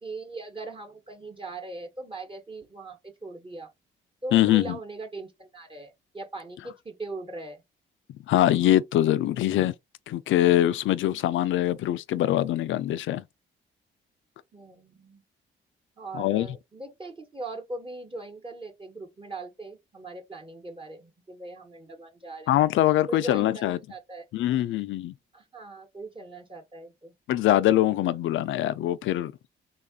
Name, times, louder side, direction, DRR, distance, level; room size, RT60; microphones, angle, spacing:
voice 1, 0.0-3.7 4.2-7.6 14.5-15.2 16.0-22.5 23.1-24.2 25.3-27.1, right 2 dB, 25° right, 1.1 m, -40 dB
voice 2, 4.3-4.8 8.3-9.7 10.1-13.2 16.1-16.5 22.5-23.8 24.3-25.1 27.3-29.3, left 13 dB, 75° left, 0.4 m, -23 dB
3.6 x 2.4 x 3.5 m
cardioid pair, 80°, 20 cm